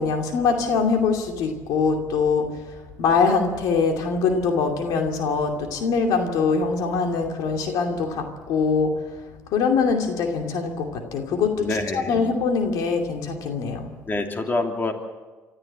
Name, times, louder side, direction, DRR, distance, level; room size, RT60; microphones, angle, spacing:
voice 1, 0.0-2.5 3.0-8.9 9.5-11.7 12.1-13.9, left 5 dB, 80° left, 4 dB, 2.6 m, -23 dB
voice 2, 11.6-12.2 14.1-14.9, left 2 dB, 35° left, 4 dB, 3.0 m, -26 dB
25.0 x 13.5 x 8.8 m, 1.3 s
cardioid pair, 80°, 6 cm